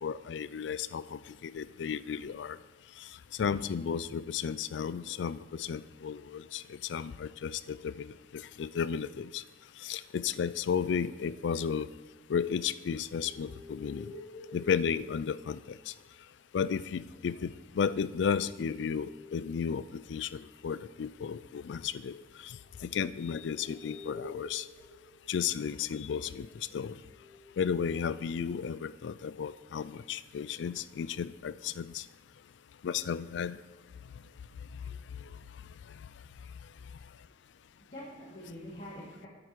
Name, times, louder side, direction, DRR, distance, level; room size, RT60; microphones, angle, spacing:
voice 1, 0.0-2.6 3.4-9.4 9.8-11.9 12.3-14.1 14.5-15.6 15.9-16.0 16.5-22.2 22.4-24.7 25.3-26.5 26.7-26.9 27.6-32.0 32.8-33.6, left 7 dB, 90° left, 17 dB, 0.4 m, -33 dB
sound 1, 13.1-15.9 17.9-25.6 27.0-27.4, left 2 dB, 10° left, 2.5 m, -51 dB
voice 2, 23.6-24.2 37.9-39.3, equal, 40° left, -5 dB, 1.6 m, -46 dB
8.9 x 8.2 x 4.6 m, 1.2 s
head